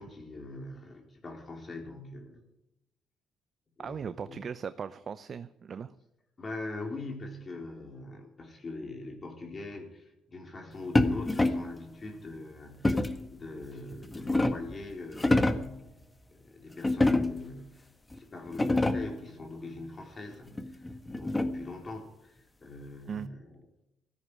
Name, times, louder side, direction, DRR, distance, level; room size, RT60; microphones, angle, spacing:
voice 1, 0.0-2.4 3.8-4.5 6.4-15.8 16.3-17.9 18.1-23.4, left 2 dB, 40° left, 1 dB, 4.2 m, -42 dB
voice 2, 3.8-5.9 23.1-23.3, right 6 dB, 50° right, 12 dB, 0.7 m, -38 dB
sound 1, 11.0-11.8 12.8-13.3 13.9-14.8 15.1-15.8 16.8-17.5 18.1-18.2 18.5-19.2 20.6-21.7, left 2 dB, 20° left, 1.6 m, -27 dB
16.0 x 14.0 x 5.0 m, 0.88 s
supercardioid pair, 65°, 0 cm